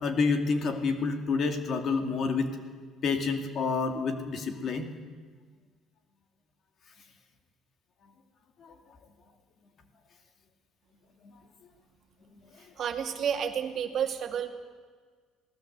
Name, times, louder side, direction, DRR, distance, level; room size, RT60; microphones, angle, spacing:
voice 1, 0.0-2.5 3.0-4.9 8.6-8.7, left 4 dB, 35° left, 6 dB, 2.6 m, -28 dB
voice 2, 12.8-14.5, right 8 dB, 40° right, 4 dB, 2.3 m, -30 dB
26.5 x 18.5 x 8.2 m, 1.6 s
cardioid pair, 175°, 0 cm